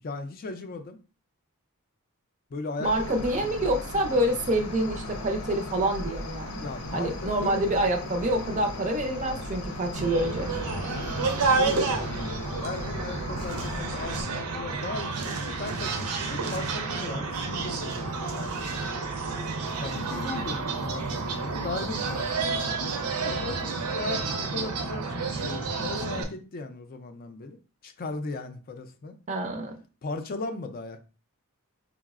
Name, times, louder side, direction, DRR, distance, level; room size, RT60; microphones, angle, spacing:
voice 1, 0.0-1.0 2.5-3.2 6.6-7.7 10.8-18.7 19.8-22.7 23.2-27.6 27.8-29.2 30.0-31.0, left 3 dB, 40° left, 8 dB, 0.4 m, -37 dB
Cricket, 2.8-14.2, left 1 dB, 75° left, 0.6 m, -37 dB
voice 2, 2.8-10.5 29.3-29.8, right 1 dB, 35° right, 3 dB, 0.4 m, -27 dB
sound 1, 9.9-26.2, right 4 dB, 80° right, 0.5 m, -30 dB
4.6 x 2.0 x 2.3 m, 0.35 s
head